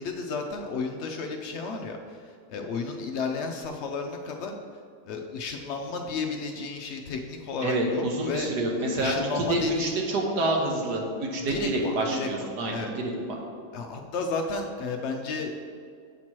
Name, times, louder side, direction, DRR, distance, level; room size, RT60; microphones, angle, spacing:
voice 1, 0.0-4.5 5.0-8.5 8.9-9.9 11.5-12.9 13.7-15.6, left 4 dB, 85° left, 3 dB, 0.6 m, -33 dB
voice 2, 7.6-13.4, right 1 dB, 80° right, 0 dB, 1.5 m, -27 dB
8.1 x 2.9 x 6.0 m, 2.2 s
omnidirectional pair, 1.7 m